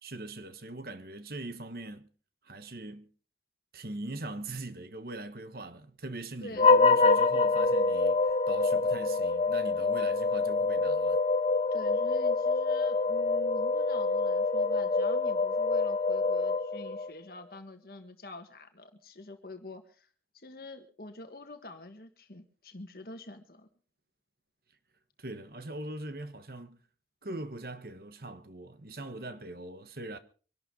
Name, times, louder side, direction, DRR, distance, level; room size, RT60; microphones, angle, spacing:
voice 1, 0.0-2.1 2.4-3.1 3.7-11.2 25.2-26.8 27.2-30.2, right 2 dB, 55° right, 1.2 m, -41 dB
sound 1, 6.6-17.1, left 3 dB, 35° left, 0.6 m, -26 dB
voice 2, 11.7-20.1 20.3-23.7, left 2 dB, 55° left, 1.6 m, -47 dB
25.0 x 12.0 x 3.9 m
head